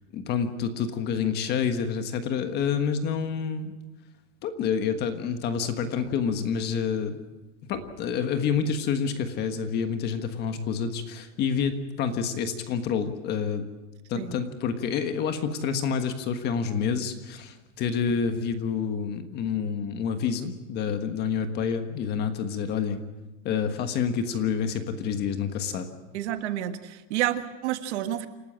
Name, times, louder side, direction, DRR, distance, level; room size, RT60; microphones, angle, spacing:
voice 1, 0.1-3.7 4.4-7.2 7.7-13.6 14.1-23.0 23.4-25.9, left 6 dB, 30° left, 8 dB, 1.4 m, -28 dB
voice 2, 26.1-28.3, right 13 dB, 65° right, 9 dB, 1.6 m, -29 dB
28.0 x 13.0 x 8.8 m, 1.1 s
supercardioid pair, 175°, 36 cm